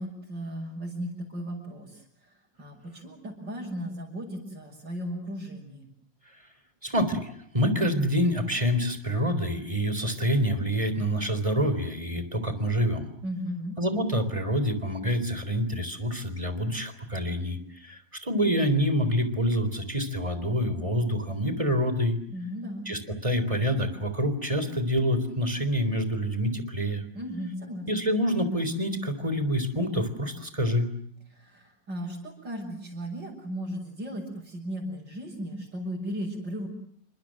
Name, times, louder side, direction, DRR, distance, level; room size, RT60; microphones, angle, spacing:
voice 1, 0.0-2.0 2.6-5.9 13.2-13.8 22.3-22.9 27.1-27.9 31.3-36.7, equal, 75° right, -4 dB, 7.3 m, -36 dB
voice 2, 6.8-13.1 13.8-22.2 22.9-27.0 27.9-30.9, equal, 15° right, 11 dB, 3.9 m, -27 dB
29.5 x 25.5 x 7.6 m, 0.67 s
omnidirectional pair, 1.9 m